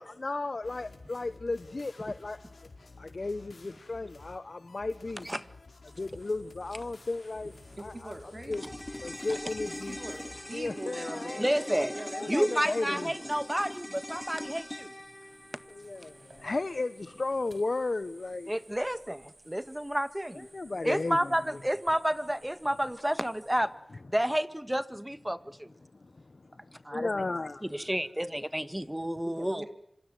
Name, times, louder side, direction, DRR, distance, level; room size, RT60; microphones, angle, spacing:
voice 1, 0.0-2.4 3.0-5.3 6.0-7.5 7.8-8.1 8.5-8.6 9.0-10.0 10.5-11.5 12.1-13.1 15.7-18.5 20.3-21.3 25.8-27.8, left 3 dB, 60° left, 12 dB, 1.1 m, -34 dB
sound 1, 0.6-10.7, left 3 dB, 90° left, 4.6 m, -52 dB
sound 2, 5.9-23.6, right 2 dB, 65° right, 6.3 m, -59 dB
voice 2, 7.8-8.8 9.9-12.6 12.8-13.4 29.2-29.7, right 1 dB, 40° right, 5 dB, 4.9 m, -42 dB
sound 3, 8.5-17.0 17.3-17.4, left 1 dB, 20° left, 1.1 m, -42 dB
voice 3, 11.4-11.9 12.3-14.9 18.5-20.5 20.8-23.7 24.1-25.7 26.8-27.1 27.6-29.7, equal, 10° right, 12 dB, 1.8 m, -30 dB
27.0 x 26.0 x 7.9 m, 0.78 s
wide cardioid pair, 60°, 0 cm